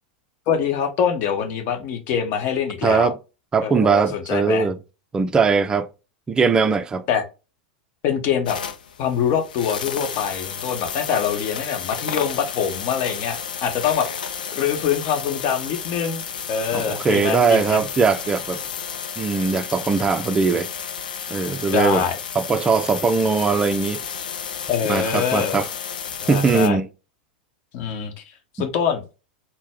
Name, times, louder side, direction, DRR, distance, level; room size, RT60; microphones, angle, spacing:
voice 1, 0.5-3.1 3.6-4.7 7.1-7.2 8.0-8.6 9.0-17.8 21.7-22.2 24.7-25.6 26.2-26.8 27.7-28.2 28.5-29.0, left 8 dB, 45° left, 0.9 m, -24 dB
voice 2, 2.8-3.2 3.5-4.8 5.1-5.9 6.3-7.1 16.7-18.6 19.2-20.7 21.3-22.1 22.4-24.0 24.9-25.7 26.3-26.9, right 5 dB, 15° right, 0.3 m, -20 dB
sound 1, 8.5-26.7, left 7 dB, 70° left, 0.5 m, -32 dB
4.0 x 2.0 x 3.7 m
figure-of-eight pair, 90°, 5 cm